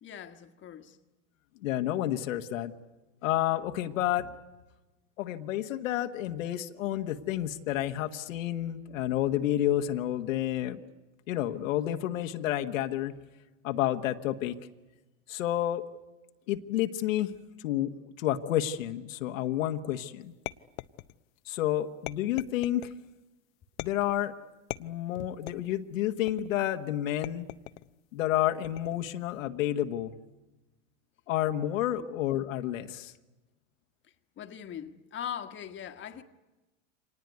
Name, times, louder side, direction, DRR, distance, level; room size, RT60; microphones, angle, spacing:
voice 1, 0.0-1.0 31.9-32.0 34.4-36.2, left 9 dB, 30° left, 1.6 m, -41 dB
voice 2, 1.6-2.7 3.2-4.3 5.2-10.8 11.3-13.2 13.6-14.5 15.3-15.8 16.5-17.3 17.6-20.3 21.5-22.9 23.8-24.3 24.8-27.5 28.1-30.1 31.3-33.1, left 12 dB, 85° left, 1.5 m, -30 dB
sound 1, 20.5-21.4 22.1-23.0 23.8-24.2 24.7-25.8 26.3-26.7 27.2-27.9 28.6-29.1, left 20 dB, 60° left, 0.8 m, -41 dB
25.5 x 19.0 x 9.5 m
supercardioid pair, 125°, 39 cm